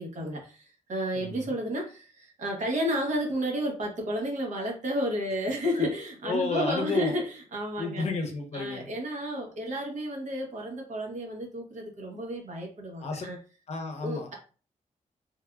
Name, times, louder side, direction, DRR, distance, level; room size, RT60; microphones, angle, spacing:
voice 1, 0.0-8.0 8.5-13.4 14.0-14.3, equal, 65° right, 0 dB, 1.0 m, -32 dB
voice 2, 1.1-1.5 5.8-5.9 6.2-7.1 7.8-8.9 13.0-13.3 13.7-14.3, left 4 dB, 55° left, 4 dB, 0.7 m, -32 dB
3.3 x 2.3 x 2.3 m, 0.37 s
wide cardioid pair, 125°, 13 cm